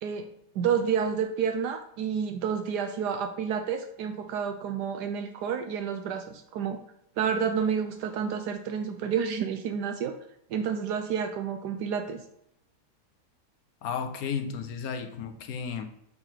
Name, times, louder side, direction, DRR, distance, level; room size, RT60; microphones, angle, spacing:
voice 1, 0.5-6.8 7.2-10.2 10.5-12.2, right 7 dB, 75° right, 7 dB, 1.2 m, -29 dB
voice 2, 13.8-15.8, left 6 dB, 65° left, 7 dB, 1.2 m, -33 dB
7.8 x 3.9 x 4.4 m, 0.79 s
omnidirectional pair, 1.8 m